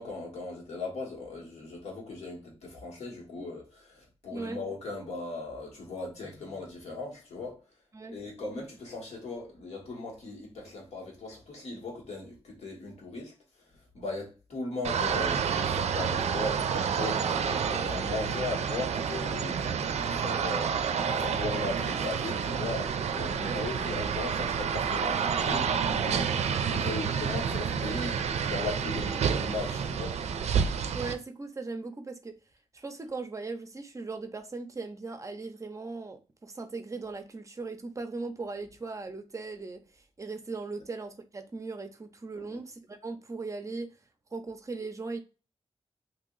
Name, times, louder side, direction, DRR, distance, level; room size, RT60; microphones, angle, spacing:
voice 1, 0.0-7.6 8.1-30.2 42.3-42.6, left 3 dB, 80° left, 1.5 m, -38 dB
sound 1, 14.8-31.1, right 7 dB, 85° right, 0.4 m, -29 dB
sound 2, 22.8-30.6, equal, 60° left, 0.7 m, -48 dB
voice 2, 30.9-32.3 32.7-43.9 44.3-45.2, right 3 dB, 30° right, 0.5 m, -38 dB
2.9 x 2.7 x 3.8 m
wide cardioid pair, 140°, 11 cm